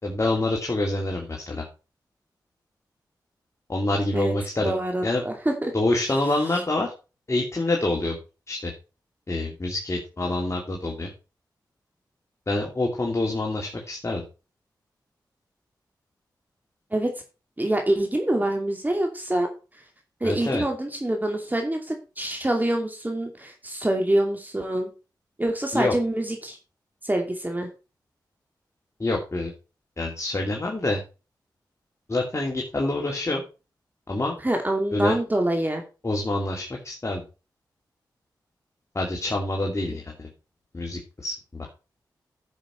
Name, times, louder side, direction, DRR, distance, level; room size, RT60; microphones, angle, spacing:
voice 1, 0.0-1.6 3.7-4.7 5.0-5.2 5.7-6.9 7.3-8.2 8.5-8.7 9.3-11.1 12.5-14.2 20.2-20.6 25.7-25.9 29.0-29.5 30.0-31.0 32.1-33.4 34.1-34.3 34.9-35.1 36.0-37.2 38.9-40.3 40.7-41.7, left 2 dB, 40° left, 0 dB, 2.6 m, -26 dB
voice 2, 4.6-5.7 16.9-17.1 17.6-19.5 20.2-24.9 25.4-26.6 27.0-27.7 34.4-35.8, right 1 dB, 20° right, 3 dB, 2.5 m, -25 dB
11.0 x 6.5 x 4.4 m, 0.32 s
cardioid pair, 40°, 8 cm